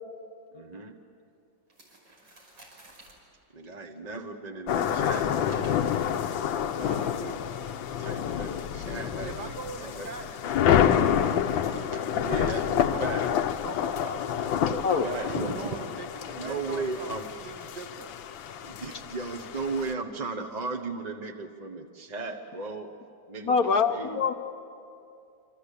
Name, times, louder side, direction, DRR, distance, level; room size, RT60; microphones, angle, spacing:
voice 1, 0.5-0.9 3.5-5.8 6.0-6.1 6.8-7.1 8.0-10.1 10.8-11.1 12.2-13.3 14.5-15.7 16.2-17.2 18.6-22.9 23.3-24.2, right 3 dB, 30° right, 4 dB, 0.9 m, -36 dB
sound 1, 1.7-3.2 4.7-6.9, right 1 dB, 85° right, 6.4 m, -52 dB
sound 2, 4.7-19.9, left 9 dB, 85° left, 1.6 m, -28 dB
voice 2, 6.7-7.6 9.2-12.6 12.8-13.3 13.6-14.3 14.9-17.1 17.4-18.1, right 3 dB, 55° right, 3 dB, 2.6 m, -42 dB
voice 3, 23.4-24.3, left 5 dB, 55° left, 6 dB, 1.2 m, -24 dB
27.5 x 26.0 x 8.4 m, 2.5 s
omnidirectional pair, 2.1 m